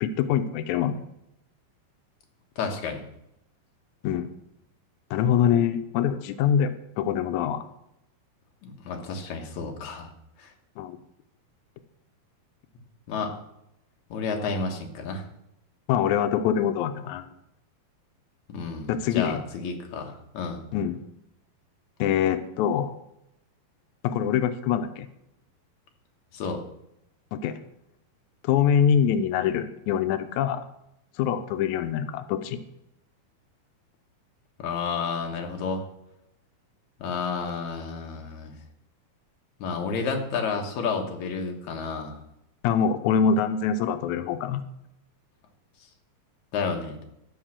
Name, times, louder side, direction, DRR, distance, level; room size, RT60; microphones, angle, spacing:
voice 1, 0.0-1.0 4.0-4.3 5.1-6.7 7.0-7.6 10.8-11.0 15.9-17.3 18.9-19.4 20.7-21.0 22.0-22.9 24.0-25.1 27.3-27.6 28.4-30.6 31.2-32.6 42.6-44.6, left 8 dB, 85° left, 9 dB, 1.6 m, -24 dB
voice 2, 2.6-3.0 8.6-10.1 10.4-10.5 13.1-13.4 14.1-15.2 18.5-20.6 26.3-26.6 34.6-35.8 37.0-38.6 39.6-42.2 46.5-47.0, left 5 dB, 60° left, 3 dB, 2.4 m, -31 dB
13.0 x 5.5 x 7.4 m, 0.83 s
omnidirectional pair, 4.2 m